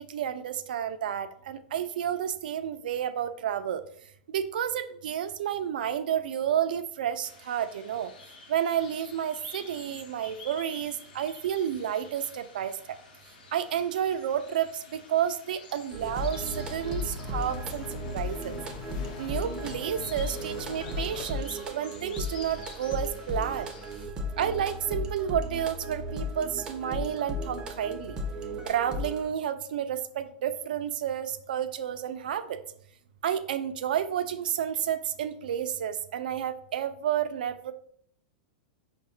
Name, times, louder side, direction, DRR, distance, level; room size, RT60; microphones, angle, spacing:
voice 1, 0.0-3.8 4.3-8.1 8.5-12.7 13.5-17.8 18.1-18.5 19.2-23.7 24.4-28.2 28.7-32.6 33.2-37.7, right 9 dB, 85° right, 11 dB, 0.3 m, -30 dB
sound 1, 7.2-24.1, left 4 dB, 85° left, 0.8 m, -50 dB
sound 2, 15.9-29.3, left 1 dB, 15° right, 0.4 m, -36 dB
Bird vocalization bird call bird song, 16.0-21.3, left 5 dB, 55° left, 0.3 m, -43 dB
4.7 x 2.1 x 2.6 m, 0.64 s
supercardioid pair, 165°, 5 cm